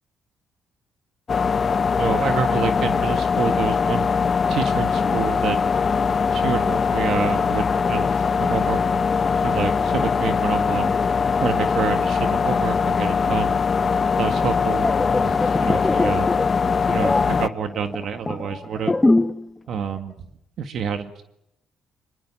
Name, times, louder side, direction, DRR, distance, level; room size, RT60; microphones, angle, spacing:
sound 1, 1.3-17.5, left 5 dB, 40° left, 0.8 m, -21 dB
voice 1, 2.0-4.1 4.5-5.6 6.3-8.8 9.4-10.9 11.4-13.6 14.2-14.9 15.2-16.3 16.9-18.9 19.7-20.1 20.6-21.2, right 7 dB, 65° right, 8 dB, 1.8 m, -28 dB
sound 2, 14.7-19.5 19.7-20.0, left 2 dB, 15° left, 1.1 m, -23 dB
25.0 x 22.5 x 7.5 m, 0.81 s
cardioid pair, 90°, 0 cm